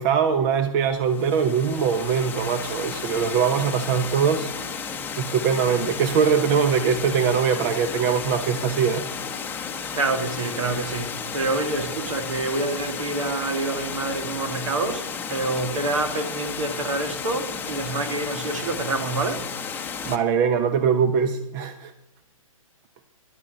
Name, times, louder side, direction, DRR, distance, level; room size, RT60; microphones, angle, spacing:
voice 1, 0.0-4.5 5.2-9.0 20.0-21.9, right 7 dB, 35° right, 0.9 m, -22 dB
Water, 1.0-20.2, left 6 dB, 10° left, 1.0 m, -33 dB
voice 2, 9.9-19.5, right 3 dB, 60° right, 2.4 m, -27 dB
11.5 x 9.6 x 7.9 m
hypercardioid pair, 135°, 18 cm